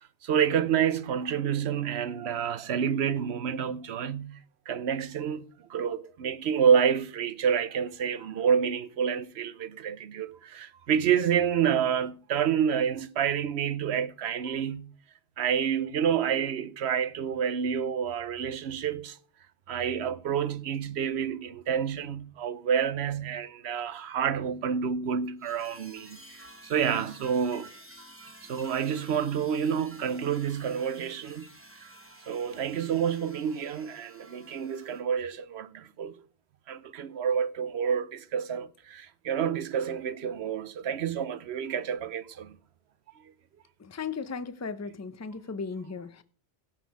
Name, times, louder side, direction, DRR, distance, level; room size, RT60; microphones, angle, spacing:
voice 1, 0.2-4.4 4.7-14.9 15.4-19.2 19.7-27.7 28.5-31.5 31.8-31.9 32.3-36.2 36.7-42.6, right 8 dB, 85° right, 1.0 m, -28 dB
sound 1, 25.4-35.0, right 1 dB, 15° right, 0.9 m, -51 dB
voice 2, 43.8-46.2, left 5 dB, 20° left, 0.6 m, -36 dB
16.5 x 6.1 x 4.7 m
omnidirectional pair, 1.1 m